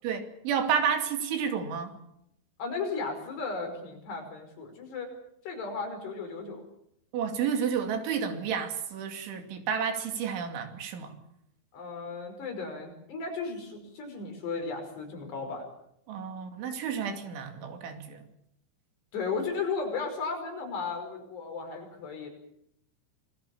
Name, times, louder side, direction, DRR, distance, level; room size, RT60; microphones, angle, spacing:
voice 1, 0.0-2.0 7.1-11.1 16.1-18.2, right 7 dB, 80° right, 6 dB, 5.0 m, -31 dB
voice 2, 2.6-5.1 5.5-6.6 11.7-15.7 19.1-22.3, left 4 dB, 60° left, 4 dB, 7.2 m, -35 dB
27.5 x 20.5 x 7.1 m, 0.76 s
omnidirectional pair, 5.3 m